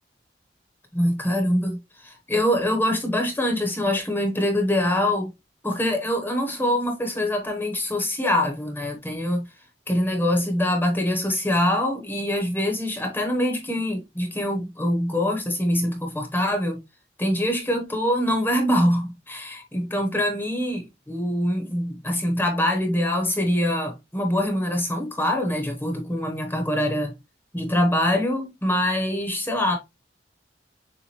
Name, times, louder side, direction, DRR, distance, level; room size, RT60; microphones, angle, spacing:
voice 1, 0.9-5.3 5.6-9.5 9.9-16.8 17.2-27.1 27.5-29.8, left 1 dB, 10° left, 1.0 m, -24 dB
7.1 x 2.4 x 3.1 m
head